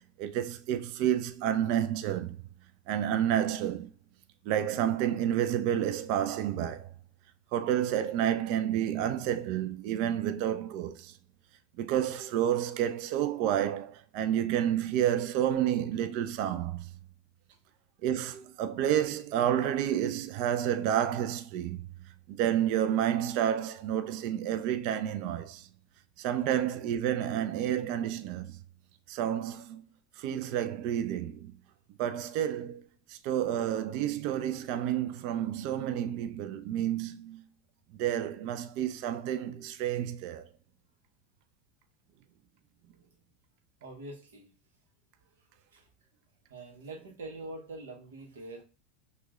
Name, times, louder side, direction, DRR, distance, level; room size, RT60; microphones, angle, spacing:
voice 1, 0.2-2.4 2.9-3.9 4.5-6.9 7.5-11.1 11.8-16.9 18.0-21.9 22.3-25.7 26.2-28.6 29.1-29.9 30.2-31.5 32.0-32.8 33.1-37.5 37.9-40.5, right 10 dB, 55° right, 0.4 m, -30 dB
voice 2, 43.8-44.5 45.7-45.9 46.5-48.6, right 2 dB, 75° right, 0.9 m, -44 dB
5.8 x 2.2 x 2.3 m
hypercardioid pair, 85°, 0 cm